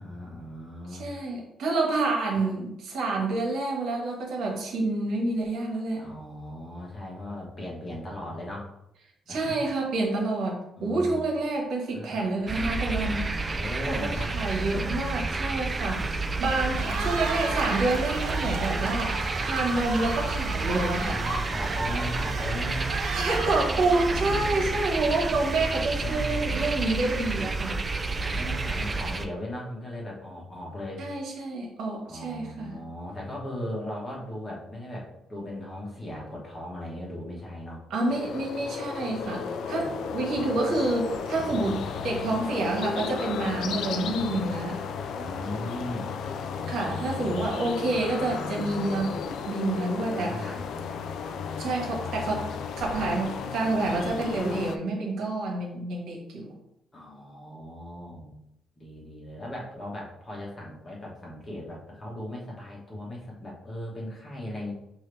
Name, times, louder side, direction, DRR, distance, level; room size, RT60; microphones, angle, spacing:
voice 1, 0.0-1.1 6.0-8.7 9.3-9.6 10.8-11.3 11.9-12.2 13.5-14.3 15.9-16.0 16.7-17.2 20.8-23.2 24.1-24.9 26.0-27.0 28.1-31.1 32.1-37.8 39.7-40.6 41.4-41.7 45.2-46.1 46.8-46.9 49.0-49.1 49.9-50.7 56.9-58.4 58.8-64.7, left 1 dB, 25° left, -3 dB, 1.2 m, -38 dB
voice 2, 0.9-6.1 9.3-13.3 13.9-21.2 23.1-27.8 31.0-32.7 37.9-44.8 46.7-50.5 51.6-52.5 52.8-56.5, right 2 dB, 70° right, -1 dB, 1.4 m, -28 dB
sound 1, 12.5-29.3, right 3 dB, 25° right, 0.3 m, -30 dB
Cheering, 16.6-24.9, right 3 dB, 85° right, 1.0 m, -34 dB
sound 2, 38.1-54.8, left 6 dB, 70° left, 0.3 m, -34 dB
5.6 x 2.8 x 3.3 m, 0.84 s
cardioid pair, 170°, 0 cm